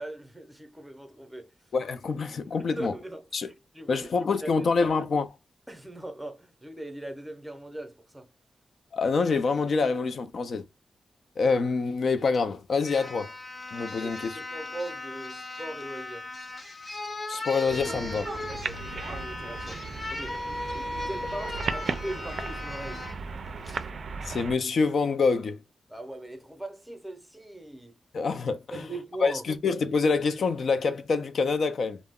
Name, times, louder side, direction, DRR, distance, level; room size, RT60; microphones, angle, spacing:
voice 1, 0.0-1.5 2.6-4.7 5.7-8.3 14.0-16.3 18.5-19.8 20.1-20.4 20.7-23.1 25.9-28.0 28.7-29.4, right 1 dB, 5° right, 0.6 m, -40 dB
voice 2, 1.7-3.0 3.3-3.5 3.9-5.3 8.9-10.6 11.4-13.3 13.7-14.4 17.3-18.3 24.3-25.6 28.1-28.8 29.2-32.0, left 4 dB, 70° left, 0.4 m, -26 dB
sound 1, 12.3-12.4 12.8-23.2 23.7-23.8, left 2 dB, 35° left, 0.6 m, -37 dB
sound 2, 17.7-24.6, right 4 dB, 65° right, 0.3 m, -36 dB
2.2 x 2.0 x 3.5 m
cardioid pair, 90°, 0 cm